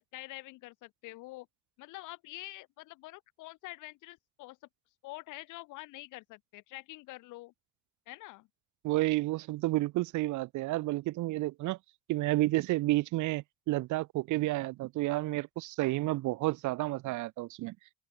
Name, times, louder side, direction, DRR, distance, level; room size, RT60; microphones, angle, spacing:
voice 1, 0.0-1.5 1.8-4.6 5.0-7.5 8.1-8.5, left 20 dB, 85° left, 1.6 m, -46 dB
voice 2, 8.8-11.8 12.1-17.8, right 18 dB, 75° right, 0.8 m, -31 dB
open air
supercardioid pair, 65°, 30 cm